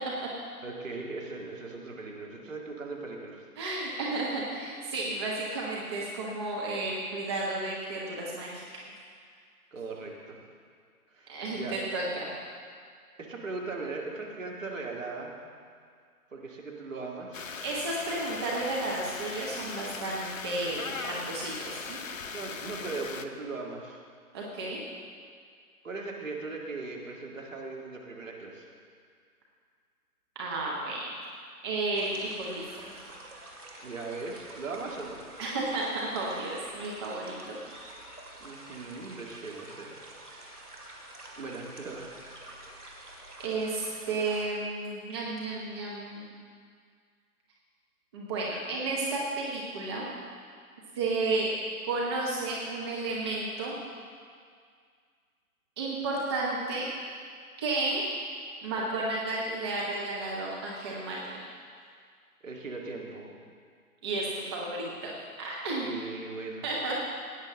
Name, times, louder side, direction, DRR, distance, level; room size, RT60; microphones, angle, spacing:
voice 1, 0.6-3.5 9.7-10.4 11.1-11.8 13.2-15.3 16.3-17.5 22.3-24.0 25.8-28.7 33.8-35.2 38.4-39.9 40.3-40.6 41.4-42.5 45.7-45.8 62.4-63.4 65.8-66.6, right 3 dB, 55° right, -1 dB, 2.1 m, -39 dB
voice 2, 3.6-8.6 11.3-12.3 17.6-22.0 24.3-24.8 30.4-31.1 31.6-32.8 35.4-37.6 43.4-46.2 48.1-50.1 50.9-51.5 51.8-53.7 55.8-56.9 57.6-58.0 58.6-61.4 64.0-65.1 65.4-65.9 66.6-66.9, right 2 dB, 20° right, -4 dB, 0.9 m, -32 dB
sound 1, 17.3-23.3, left 5 dB, 55° left, 0.7 m, -39 dB
sound 2, 31.9-44.5, right 1 dB, 80° right, 2.4 m, -48 dB
16.5 x 9.6 x 3.7 m, 2.1 s
figure-of-eight pair, 140°, 45 cm